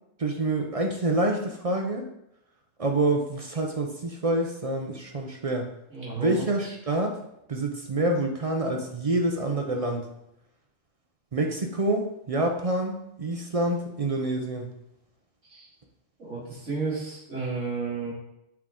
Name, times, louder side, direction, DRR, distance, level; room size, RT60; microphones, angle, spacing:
voice 1, 0.2-2.0 2.8-5.7 6.2-7.2 7.5-10.0 11.3-14.7, right 2 dB, 40° right, 2 dB, 0.5 m, -27 dB
voice 2, 5.9-6.5 15.5-15.7 16.2-18.1, right 4 dB, 75° right, -7 dB, 2.4 m, -32 dB
7.5 x 3.6 x 3.6 m, 0.83 s
omnidirectional pair, 1.3 m